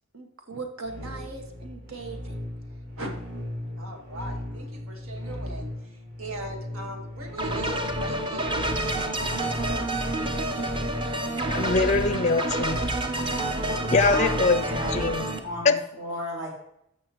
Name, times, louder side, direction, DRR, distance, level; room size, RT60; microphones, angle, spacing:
voice 1, 0.1-2.3 3.0-3.1 3.8-5.7 6.2-8.6, right 2 dB, 80° right, 3 dB, 1.7 m, -39 dB
sound 1, 0.8-15.6, left 1 dB, 40° right, 2.6 m, -38 dB
sound 2, 7.4-15.4, right 1 dB, 25° right, 0.7 m, -28 dB
voice 2, 11.5-12.9 13.9-14.6 14.9-15.2 15.7-15.8, left 4 dB, 35° left, 10 dB, 0.4 m, -22 dB
voice 3, 14.0-16.5, equal, 60° right, -3 dB, 3.7 m, -35 dB
14.5 x 5.6 x 3.1 m, 0.77 s
head